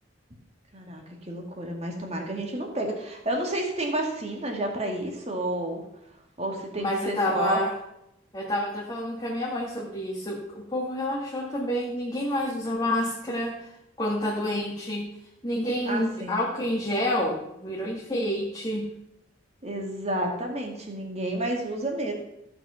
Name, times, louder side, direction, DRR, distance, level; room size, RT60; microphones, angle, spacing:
voice 1, 0.7-5.8 6.4-7.6 15.9-16.3 19.6-22.1, right 1 dB, 35° right, 1 dB, 2.4 m, -30 dB
voice 2, 6.8-7.7 8.3-13.7 14.0-15.1 15.4-18.9, left 1 dB, 20° left, -4 dB, 2.0 m, -28 dB
15.5 x 6.0 x 5.8 m, 0.84 s
head